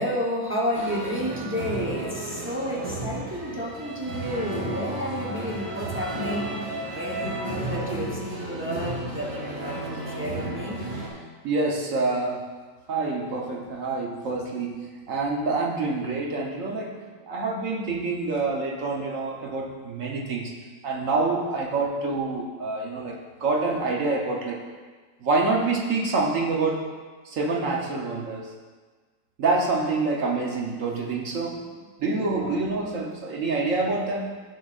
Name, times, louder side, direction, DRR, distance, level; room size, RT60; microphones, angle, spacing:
voice 1, 0.0-6.6 6.9-10.8 32.0-32.5, equal, 15° right, -4 dB, 0.4 m, -31 dB
sound 1, 0.7-11.1, right 2 dB, 80° right, 2.0 m, -33 dB
voice 2, 11.4-12.4 12.9-20.5 20.8-24.6 25.2-26.9 27.2-28.5 29.4-31.6 32.0-34.3, right 3 dB, 50° right, -1 dB, 1.2 m, -27 dB
10.5 x 6.7 x 2.5 m, 1.4 s
omnidirectional pair, 2.0 m